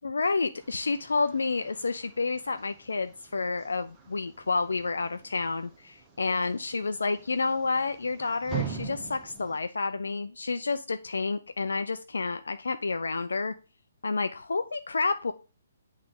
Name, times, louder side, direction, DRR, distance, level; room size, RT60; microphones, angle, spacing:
voice 1, 0.0-13.5 14.0-15.3, left 4 dB, 65° left, 10 dB, 0.3 m, -30 dB
sound 1, 0.5-9.6, right 7 dB, 15° right, 0.9 m, -43 dB
8.6 x 3.2 x 3.6 m, 0.35 s
figure-of-eight pair, 130°, 0 cm